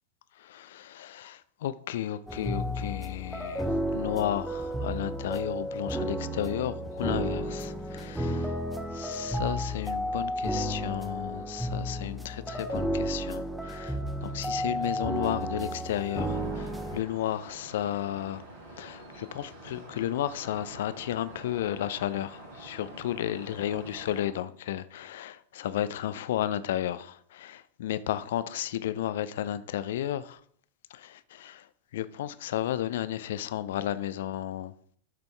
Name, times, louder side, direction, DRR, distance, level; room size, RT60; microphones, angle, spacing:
voice 1, 0.4-8.5 8.9-18.4 18.7-30.4 30.9-34.7, left 12 dB, 55° left, 0.4 m, -33 dB
sound 1, 2.3-17.0, equal, ahead, 0.9 m, -32 dB
sound 2, 16.2-24.3, right 1 dB, 65° right, 3.1 m, -47 dB
12.5 x 5.2 x 3.3 m
figure-of-eight pair, 90°, 0 cm